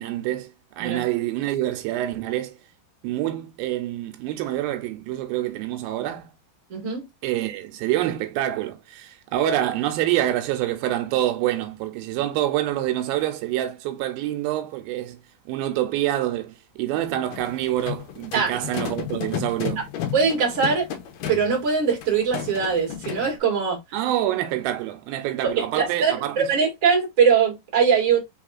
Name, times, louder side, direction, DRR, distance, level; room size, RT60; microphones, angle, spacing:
voice 1, 0.0-2.6 3.0-6.3 7.2-15.2 15.5-19.8 23.9-26.5, right 13 dB, 85° right, 2.4 m, -26 dB
voice 2, 6.7-7.1 18.3-18.5 20.1-20.9 21.3-23.8 25.5-28.2, right 6 dB, 30° right, 1.8 m, -21 dB
sound 1, 17.3-23.3, left 9 dB, 75° left, 2.3 m, -33 dB
5.4 x 3.5 x 2.4 m
omnidirectional pair, 4.2 m